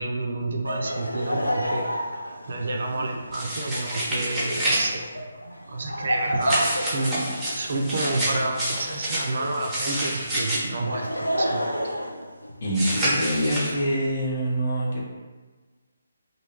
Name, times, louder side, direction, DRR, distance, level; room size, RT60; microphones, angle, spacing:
voice 1, 0.0-1.9 2.5-5.0 5.7-11.1 11.3-12.0, right 2 dB, 55° right, 2 dB, 0.3 m, -29 dB
Laughter, 0.6-9.7 10.6-12.9, equal, 90° left, 0.3 m, -31 dB
sound 1, 3.3-4.8 6.4-10.6 12.7-13.7, right 1 dB, 5° right, 0.7 m, -28 dB
voice 2, 12.6-15.0, equal, 50° left, -3 dB, 0.7 m, -25 dB
2.7 x 2.2 x 2.8 m, 1.4 s
figure-of-eight pair, 145°, 0 cm